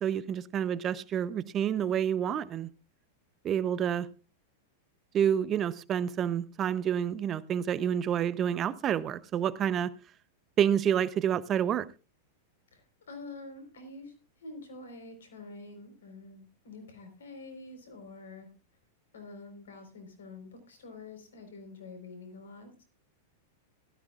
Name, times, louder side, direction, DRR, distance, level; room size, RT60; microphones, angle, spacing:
voice 1, 0.0-2.7 3.4-4.1 5.1-9.9 10.6-11.9, right 9 dB, 30° right, 0.7 m, -28 dB
voice 2, 12.7-14.1 14.4-18.5 19.1-22.8, left 3 dB, 80° left, 4.2 m, -47 dB
16.5 x 13.0 x 2.4 m
hypercardioid pair, 105°, 0 cm